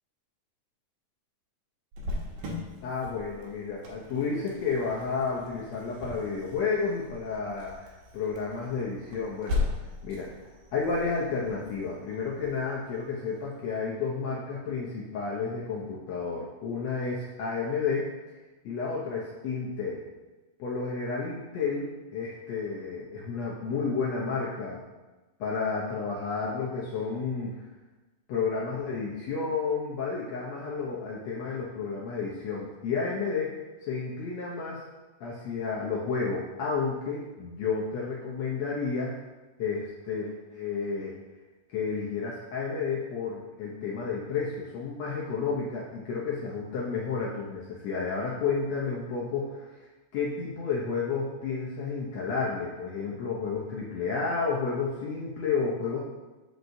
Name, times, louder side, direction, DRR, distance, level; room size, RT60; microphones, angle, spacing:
Cricket, 1.9-13.4, left 3 dB, 75° right, 2.5 m, -38 dB
voice 1, 2.8-9.6 10.0-10.3 10.7-18.1 18.6-20.0 20.6-24.8 25.4-27.6 28.3-33.5 33.8-34.8 35.2-39.1 39.6-41.1 41.7-49.7 50.1-56.0, left 5 dB, 75° left, -5 dB, 1.5 m, -31 dB
7.8 x 5.6 x 2.6 m, 1.2 s
omnidirectional pair, 4.0 m